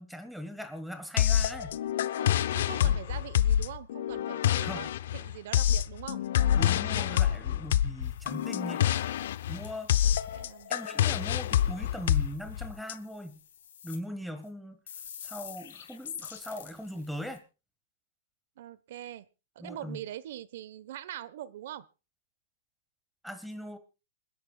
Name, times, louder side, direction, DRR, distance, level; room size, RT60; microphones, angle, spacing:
voice 1, 0.0-1.8 2.8-3.0 4.6-4.9 6.5-8.9 9.5-10.0 10.7-13.4 13.8-14.8 15.2-17.4 19.6-20.0 23.2-23.8, equal, ahead, 9 dB, 1.7 m, -40 dB
sound 1, 1.2-12.9, left 11 dB, 65° left, 0.7 m, -27 dB
voice 2, 2.2-6.2 10.0-10.7 18.6-19.3 19.5-21.8, right 12 dB, 60° right, 18 dB, 1.1 m, -43 dB
sound 2, 8.0-14.0 14.4-14.5 14.9-17.4, left 8 dB, 85° left, 4.0 m, -49 dB
27.5 x 10.5 x 2.4 m, 0.30 s
supercardioid pair, 155°, 0 cm